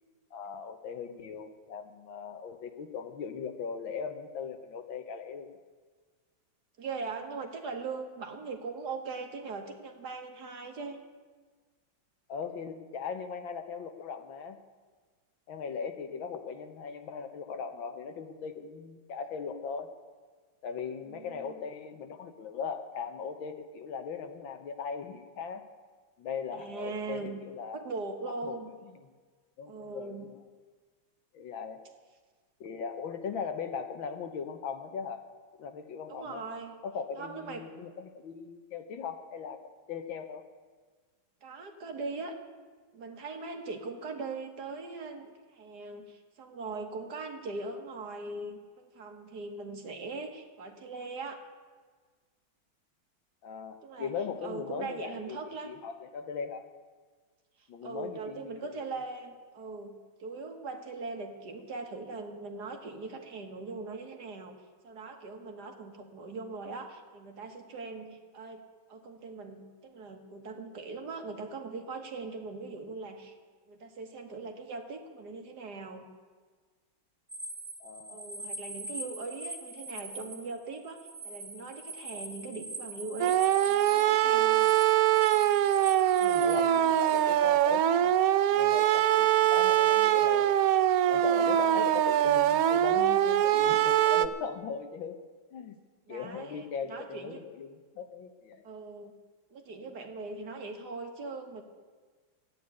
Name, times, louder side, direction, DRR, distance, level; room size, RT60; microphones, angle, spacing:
voice 1, 0.3-5.5 12.3-14.6 15.5-19.9 20.6-25.6 26.2-27.8 28.4-28.6 29.6-30.4 31.3-31.8 32.6-35.2 35.6-36.4 36.8-39.6 39.9-40.4 53.4-56.7 57.7-59.0 77.8-78.2 86.2-88.2 88.5-90.6 91.1-95.2 95.5-95.8 96.1-98.6, left 6 dB, 75° left, 8 dB, 1.8 m, -39 dB
voice 2, 6.8-11.0 21.1-21.6 26.5-27.4 27.7-28.7 29.7-30.3 36.1-36.7 37.2-37.7 41.4-42.4 42.9-51.4 53.8-54.1 54.4-55.7 57.6-64.6 64.8-68.6 68.9-73.3 73.7-76.1 78.1-81.0 81.2-84.7 91.4-91.9 96.1-97.4 98.6-99.1 99.5-101.6, right 3 dB, 55° right, 5 dB, 1.8 m, -40 dB
sound 1, 77.3-87.2, right 1 dB, 20° right, 2.7 m, -43 dB
sound 2, 83.2-94.3, right 12 dB, 85° right, 0.8 m, -23 dB
13.5 x 9.2 x 9.6 m, 1.5 s
omnidirectional pair, 2.1 m